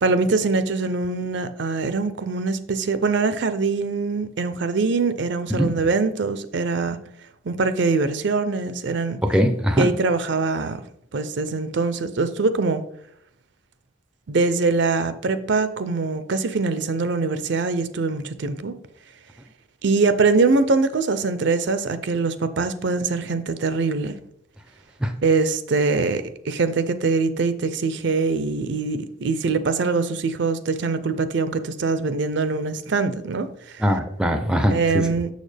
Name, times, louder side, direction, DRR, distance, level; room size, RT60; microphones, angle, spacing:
voice 1, 0.0-7.0 7.4-9.2 9.8-10.8 11.1-12.8 14.3-18.8 19.8-24.2 25.2-33.8 34.7-35.3, right 4 dB, 60° right, 0.5 m, -23 dB
voice 2, 9.3-9.9 25.0-25.1 33.8-35.1, equal, 5° right, 0.4 m, -21 dB
6.7 x 6.4 x 3.3 m
head